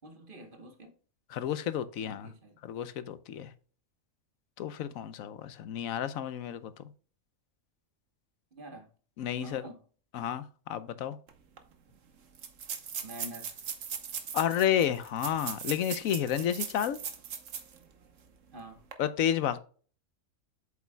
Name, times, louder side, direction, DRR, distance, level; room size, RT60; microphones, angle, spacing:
voice 1, 0.0-0.9 2.0-2.6 8.5-8.9 9.4-9.8 13.0-13.6 18.5-18.8, right 1 dB, 40° right, 1.3 m, -47 dB
voice 2, 1.3-2.3 2.6-3.5 4.6-6.7 9.2-9.6 10.1-11.2 14.3-17.0 19.0-19.6, left 10 dB, 90° left, 1.1 m, -31 dB
sound 1, 11.3-11.4 11.6-11.7 12.3-17.8 18.2-18.3 18.8-18.9, right 7 dB, 70° right, 1.3 m, -39 dB
8.2 x 7.1 x 2.2 m
omnidirectional pair, 1.4 m